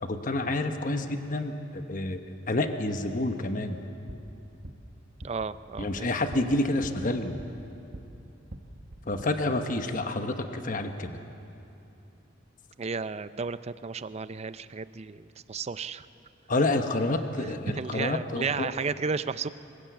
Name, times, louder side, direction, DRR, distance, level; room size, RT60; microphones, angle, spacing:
voice 1, 0.0-2.2 2.5-3.8 5.8-7.4 9.1-11.2 16.5-18.7, left 2 dB, 45° left, 7 dB, 1.1 m, -29 dB
sound 1, 4.0-8.1 8.4-9.2, right 1 dB, 50° right, 1.2 m, -45 dB
voice 2, 5.2-6.1 12.8-16.1 17.8-19.5, right 5 dB, 35° right, 14 dB, 0.5 m, -33 dB
24.5 x 16.0 x 8.1 m, 2.8 s
head